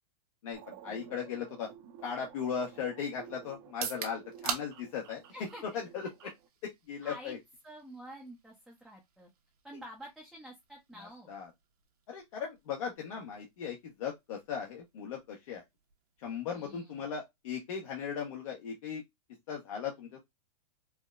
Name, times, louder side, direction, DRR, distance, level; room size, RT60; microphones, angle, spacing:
voice 1, 0.4-1.7 2.0-5.2 5.7-6.1 6.9-7.4 11.0-11.5 12.1-15.6 16.2-19.0 19.5-20.2, left 7 dB, 60° left, 1.0 m, -38 dB
sound 1, 0.5-6.5, right 9 dB, 40° right, 0.7 m, -52 dB
sound 2, 3.6-17.5, right 7 dB, 70° right, 1.1 m, -47 dB
voice 2, 5.3-5.6 7.0-7.3 7.6-9.3 9.6-11.3 16.5-17.0, equal, ahead, 0.6 m, -48 dB
4.6 x 2.1 x 2.3 m
hypercardioid pair, 150°, 20 cm